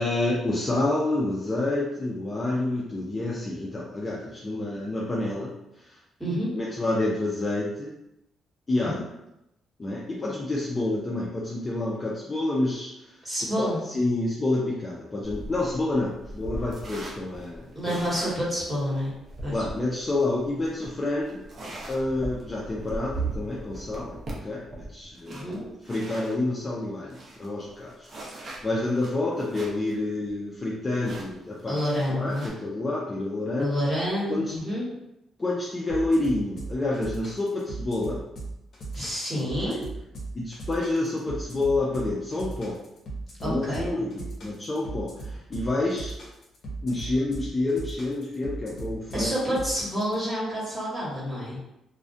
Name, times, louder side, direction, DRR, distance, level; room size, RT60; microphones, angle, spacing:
voice 1, 0.0-5.5 5.8-6.0 6.5-7.9 8.7-9.0 9.8-13.1 13.6-17.9 19.5-21.4 21.9-25.5 25.9-31.8 32.1-33.7 34.3-34.5 35.4-38.2 39.6-39.8 40.3-42.8 43.4-46.1 46.8-49.3, left 2 dB, 25° left, -5 dB, 0.4 m, -28 dB
voice 2, 6.2-6.5 8.8-9.0 13.2-13.8 17.7-19.1 19.4-19.5 25.3-25.6 31.7-32.4 33.6-34.8 38.9-39.8 43.4-43.8 49.1-51.6, equal, ahead, -9 dB, 1.3 m, -28 dB
sound 1, 15.2-26.4 26.8-26.9 27.1-29.9 30.3-30.4 31.0-32.5, right 2 dB, 45° right, 0.6 m, -39 dB
sound 2, 35.9-50.1, right 3 dB, 60° left, 0.7 m, -38 dB
2.3 x 2.1 x 2.5 m, 0.87 s
cardioid pair, 90°, 0 cm